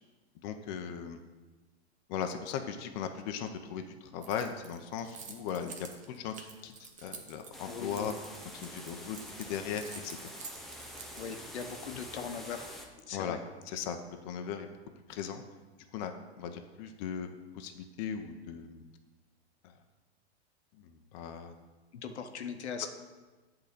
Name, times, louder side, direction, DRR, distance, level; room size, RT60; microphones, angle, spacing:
voice 1, 0.4-1.2 2.1-3.8 4.1-6.3 6.6-6.7 7.0-8.1 8.5-10.2 13.1-13.4 13.7-14.0 14.2-14.7 15.1-15.4 15.9-16.1 16.4-17.3 17.5-18.8 21.1-21.5, left 8 dB, 45° left, 6 dB, 0.7 m, -37 dB
Keys jangling, 4.2-11.9, right 5 dB, 25° right, 0.9 m, -49 dB
sound 1, 7.5-12.9, left 1 dB, ahead, 0.3 m, -47 dB
voice 2, 7.7-8.1 11.2-12.7 13.1-13.4 21.9-22.9, left 6 dB, 85° left, 6 dB, 1.0 m, -39 dB
8.3 x 3.9 x 6.7 m, 1.3 s
hypercardioid pair, 135°, 33 cm